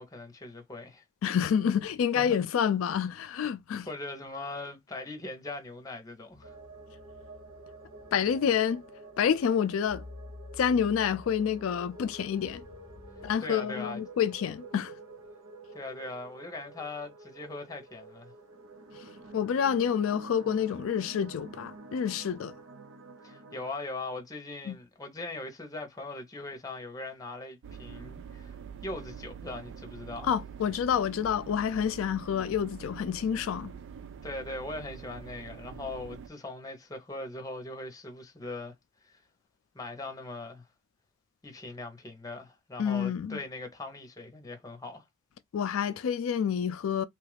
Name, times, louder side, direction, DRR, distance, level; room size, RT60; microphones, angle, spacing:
voice 1, 0.0-1.0 2.2-2.4 3.8-6.5 13.4-14.0 15.7-18.3 23.2-30.3 34.2-38.7 39.0-39.2 39.7-40.7 41.4-45.0, left 2 dB, 20° left, 0.8 m, -40 dB
voice 2, 1.2-3.9 8.1-8.8 9.2-10.1 10.6-12.6 13.2-14.9 18.9-22.6 24.7-24.8 30.2-33.7 42.8-43.4 45.5-47.0, left 8 dB, 85° left, 0.3 m, -28 dB
sound 1, 6.3-13.4, left 2 dB, 25° right, 0.8 m, -51 dB
sound 2, 6.4-23.7, right 2 dB, 85° right, 0.9 m, -49 dB
sound 3, 27.6-36.3, right 7 dB, 65° right, 0.3 m, -45 dB
3.0 x 2.4 x 3.2 m
head